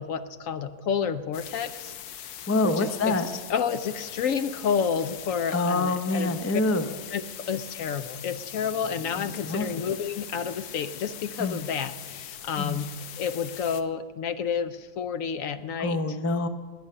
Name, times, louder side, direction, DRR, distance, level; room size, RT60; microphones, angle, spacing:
voice 1, 0.0-1.9 2.2-2.4 2.6-3.2 3.5-6.3 7.1-12.9 13.2-16.0, left 7 dB, 65° left, 11 dB, 1.0 m, -30 dB
sound 1, 1.3-13.8, left 10 dB, 90° left, 1.3 m, -41 dB
voice 2, 2.5-3.3 5.5-6.9 9.2-9.8 11.4-11.6 12.6-12.8 15.8-16.5, left 2 dB, 25° left, 8 dB, 0.3 m, -26 dB
20.0 x 8.5 x 6.7 m, 1.5 s
omnidirectional pair, 1.6 m